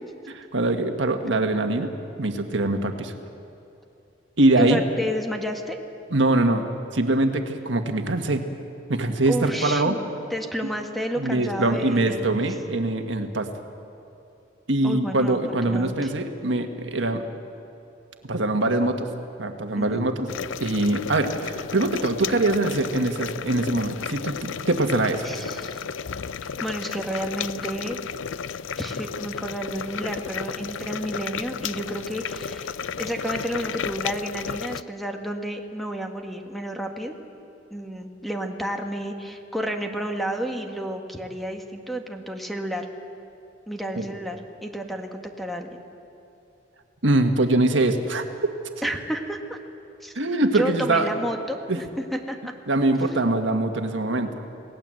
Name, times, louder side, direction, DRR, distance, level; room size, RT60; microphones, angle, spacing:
voice 1, 0.3-1.9 2.2-3.1 4.4-4.8 6.1-6.7 6.9-8.4 8.9-10.0 11.2-13.5 14.7-17.2 18.2-19.1 19.4-20.3 20.6-25.2 44.0-44.1 47.0-48.2 50.2-51.1 51.7-51.8 52.7-54.3, right 2 dB, 75° right, 5 dB, 1.7 m, -23 dB
voice 2, 4.6-5.8 9.2-10.0 10.3-12.2 14.8-16.1 19.7-20.1 25.2-25.8 26.4-28.0 28.8-37.1 37.7-42.9 43.7-45.8 48.8-49.6 50.0-50.2 50.5-52.5, equal, ahead, 3 dB, 1.6 m, -31 dB
sound 1, 20.3-34.8, left 7 dB, 90° left, 0.5 m, -33 dB
28.0 x 18.5 x 7.8 m, 2.7 s
head